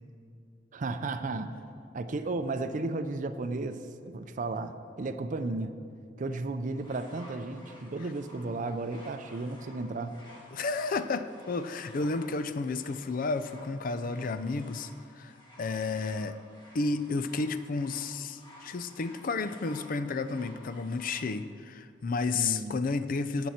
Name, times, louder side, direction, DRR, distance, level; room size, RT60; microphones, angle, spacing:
voice 1, 0.7-1.5 1.9-5.7 6.2-10.2 22.3-22.8, right 3 dB, 45° right, 9 dB, 0.5 m, -34 dB
sound 1, 6.7-21.3 22.2-22.3, equal, 25° left, 1.9 m, -54 dB
voice 2, 10.5-16.4 16.7-23.5, left 3 dB, 50° left, 12 dB, 0.5 m, -32 dB
17.0 x 6.2 x 4.3 m, 2.3 s
head